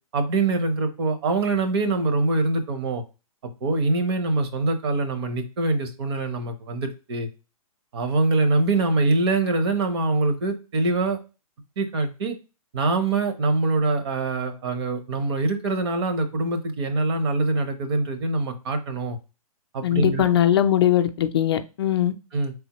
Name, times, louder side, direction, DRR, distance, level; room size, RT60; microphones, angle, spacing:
voice 1, 0.1-3.0 3.4-7.3 7.9-11.2 11.8-12.4 12.7-19.2 19.7-20.4 22.3-22.5, right 3 dB, 45° right, 7 dB, 0.8 m, -24 dB
voice 2, 19.8-22.1, left 11 dB, 45° left, 7 dB, 0.4 m, -20 dB
4.0 x 3.5 x 2.9 m, 0.30 s
hypercardioid pair, 155°, 19 cm